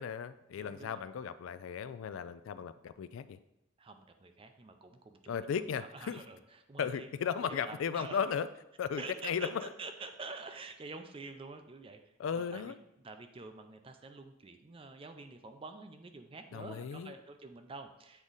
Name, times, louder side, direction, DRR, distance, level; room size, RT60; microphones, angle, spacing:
voice 1, 0.0-3.4 5.3-6.2 6.8-8.5 8.8-9.7 12.2-12.8 16.5-17.1, left 7 dB, 75° left, 13 dB, 0.3 m, -36 dB
voice 2, 0.6-1.0 3.8-6.4 6.7-7.1 7.5-8.2 9.0-12.0 12.3-12.7 13.0-18.2, right 3 dB, 25° right, 7 dB, 0.4 m, -47 dB
8.0 x 3.6 x 3.9 m, 0.87 s
head